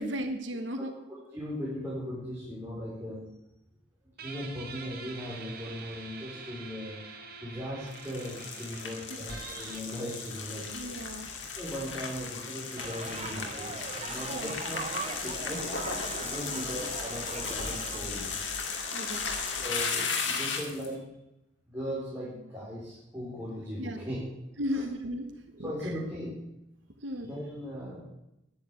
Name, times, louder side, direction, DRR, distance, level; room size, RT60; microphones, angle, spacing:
voice 1, 0.0-0.9 8.9-9.2 10.7-11.3 14.3-14.5 16.4-16.7 18.9-19.3 23.8-24.1 24.6-26.0 27.0-27.3, equal, 70° right, 6 dB, 1.4 m, -36 dB
voice 2, 0.8-3.2 4.2-10.7 11.6-13.7 14.0-15.6 16.2-18.4 19.6-21.0 21.7-24.3 25.6-26.3 27.2-28.0, equal, 15° right, -8 dB, 4.5 m, -38 dB
Guitar, 4.2-11.4, right 5 dB, 55° right, 1.7 m, -46 dB
sound 1, 7.9-20.9, left 5 dB, 70° left, 2.4 m, -35 dB
sound 2, 12.8-18.0, right 4 dB, 35° right, 0.7 m, -40 dB
10.5 x 10.0 x 8.4 m, 0.87 s
head